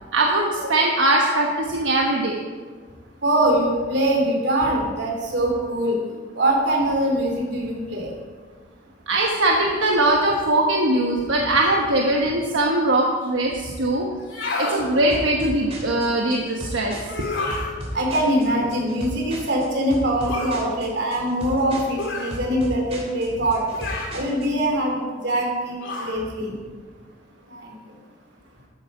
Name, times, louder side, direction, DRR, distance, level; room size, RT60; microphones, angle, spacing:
voice 1, 0.1-2.4 9.1-14.1 14.6-17.3, right 1 dB, 85° right, 0 dB, 1.2 m, -21 dB
voice 2, 3.2-6.0 6.3-8.1 17.9-23.6 24.1-26.5 27.5-27.7, right 1 dB, 65° right, 0 dB, 3.2 m, -23 dB
sound 1, 14.2-14.8 17.0-17.7 20.3-20.6 22.0-22.4 23.7-24.2 25.8-26.2, left 2 dB, 85° left, 2.6 m, -29 dB
sound 2, 15.1-24.6, equal, 35° right, 3.1 m, -35 dB
13.5 x 9.0 x 4.9 m, 1.5 s
head